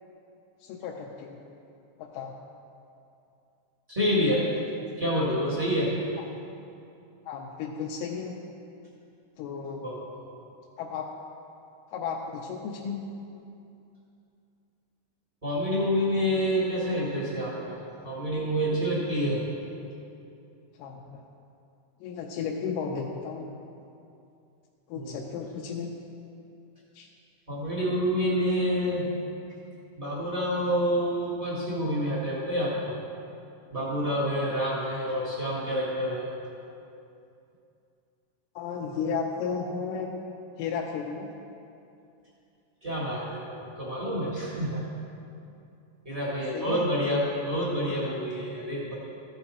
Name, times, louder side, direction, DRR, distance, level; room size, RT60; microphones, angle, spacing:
voice 1, 0.6-1.4 2.0-2.3 6.2-6.3 7.3-8.3 9.4-9.9 10.8-11.1 11.9-13.0 20.8-21.2 22.0-23.5 24.9-25.9 26.9-27.1 38.6-40.1 40.6-41.3 46.5-46.9, left 6 dB, 85° left, 0 dB, 2.2 m, -34 dB
voice 2, 3.9-4.4 5.0-5.9 9.8-10.0 10.3-10.4 15.4-17.8 18.0-19.4 24.9-25.2 27.5-29.1 30.0-33.0 33.7-36.3 42.8-44.8 46.0-48.9, equal, 35° right, -8 dB, 0.5 m, -28 dB
14.5 x 5.7 x 4.2 m, 2.7 s
omnidirectional pair, 3.9 m